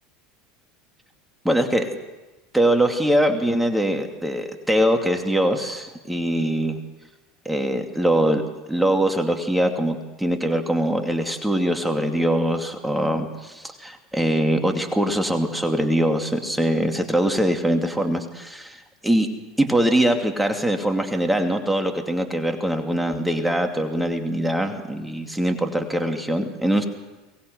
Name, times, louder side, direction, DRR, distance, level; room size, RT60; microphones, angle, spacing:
voice 1, 1.4-2.0 2.5-6.8 7.4-8.4 8.7-18.8 19.0-19.3 19.6-26.9, right 1 dB, 5° right, 4 dB, 2.5 m, -22 dB
23.5 x 19.5 x 8.0 m, 1.1 s
hypercardioid pair, 80°, 0 cm